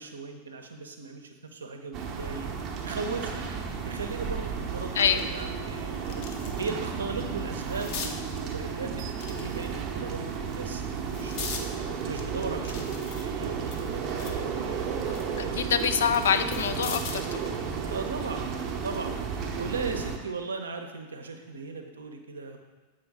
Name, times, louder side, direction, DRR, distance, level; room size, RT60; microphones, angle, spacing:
voice 1, 0.0-2.5 2.8-3.5 3.8-6.2 6.6-11.5 12.0-15.0 15.4-15.5 17.8-19.2 19.5-22.6, right 4 dB, 70° right, 4 dB, 0.7 m, -37 dB
sound 1, 1.9-20.2, right 6 dB, 35° right, 0.8 m, -33 dB
sound 2, 4.9-5.0 5.4-6.9 7.2-8.2 9.1-10.0 10.6-11.7 12.2-14.4 14.8-17.3 18.7-18.9, left 5 dB, 45° left, 0.8 m, -41 dB
voice 2, 15.6-17.4, left 7 dB, 60° left, 9 dB, 0.4 m, -25 dB
7.8 x 5.1 x 3.5 m, 1.3 s
figure-of-eight pair, 90°, 0 cm